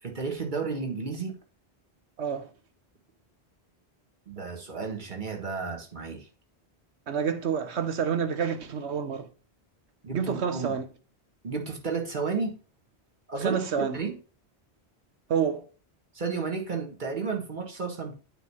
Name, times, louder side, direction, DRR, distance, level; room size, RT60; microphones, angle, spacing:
voice 1, 0.0-1.3 4.3-6.3 10.0-10.8 11.4-12.6 13.3-14.2 16.1-18.2, right 4 dB, 45° right, 1.7 m, -32 dB
voice 2, 2.2-2.5 7.1-9.3 10.1-10.9 13.4-14.0 15.3-15.6, right 7 dB, 85° right, 1.2 m, -28 dB
9.0 x 3.3 x 5.5 m
omnidirectional pair, 1.1 m